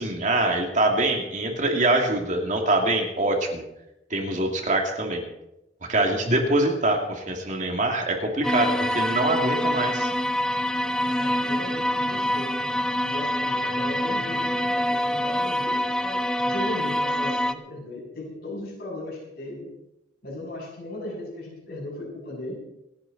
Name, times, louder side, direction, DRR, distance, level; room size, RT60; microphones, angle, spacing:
voice 1, 0.0-3.6 4.1-5.2 5.9-10.1, right 2 dB, 40° right, 2 dB, 2.3 m, -24 dB
sound 1, 8.4-17.5, left 1 dB, 5° left, 0.6 m, -25 dB
voice 2, 10.8-12.6 13.0-19.7 20.2-22.6, left 1 dB, 55° left, -4 dB, 7.7 m, -37 dB
28.0 x 9.8 x 4.1 m, 0.89 s
head